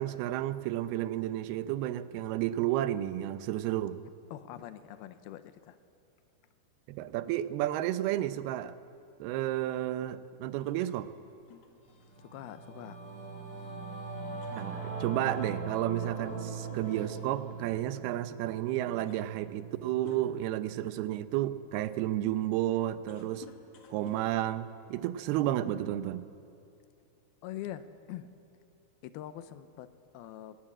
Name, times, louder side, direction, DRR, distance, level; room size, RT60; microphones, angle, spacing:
voice 1, 0.0-4.0 6.9-8.7 9.2-11.1 14.5-23.5 23.9-26.3, right 13 dB, 80° right, 13 dB, 2.7 m, -32 dB
voice 2, 4.3-5.8 12.2-13.0 13.6-13.7 27.4-28.3 29.0-30.6, left 12 dB, 80° left, 12 dB, 2.6 m, -44 dB
sound 1, 10.6-13.7 14.0-14.1 14.4-16.6 16.9-17.1 18.1-18.2 18.7-20.6 21.2-25.3, left 5 dB, 50° left, 2.3 m, -55 dB
Singing / Musical instrument, 11.9-21.6, right 5 dB, 15° left, 2.3 m, -41 dB
20.0 x 18.0 x 8.7 m, 2.5 s
omnidirectional pair, 4.5 m